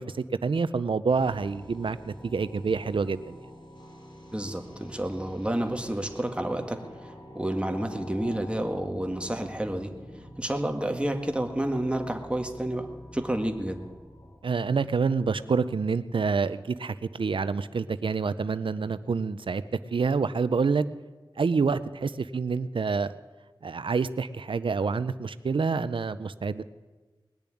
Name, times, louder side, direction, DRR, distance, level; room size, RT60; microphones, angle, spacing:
voice 1, 0.0-3.4 14.4-19.6 19.9-20.8 21.4-23.1 23.6-26.6, right 5 dB, 90° right, 14 dB, 0.5 m, -27 dB
sound 1, 1.1-15.1, equal, 70° left, 4.4 m, -47 dB
voice 2, 4.3-9.9 10.4-12.9 13.1-13.8, right 1 dB, 15° right, 4 dB, 1.8 m, -30 dB
20.5 x 7.0 x 9.9 m, 1.3 s
wide cardioid pair, 55°, 8 cm